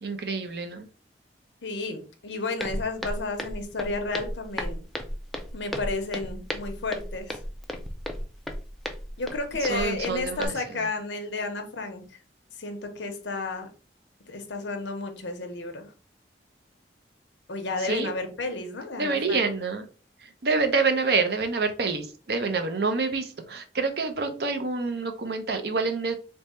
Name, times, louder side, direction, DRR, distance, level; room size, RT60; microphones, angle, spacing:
voice 1, 0.0-0.9 9.6-10.5 17.8-18.1 19.0-19.9 20.2-26.1, right 4 dB, 60° right, 7 dB, 0.6 m, -27 dB
voice 2, 1.6-4.8 5.5-7.4 9.2-12.0 12.6-13.7 14.3-15.9 17.5-19.5, left 3 dB, 90° left, 5 dB, 0.8 m, -32 dB
Walk footsteps, 2.6-10.5, equal, ahead, 0.4 m, -35 dB
3.5 x 2.1 x 4.2 m, 0.37 s
head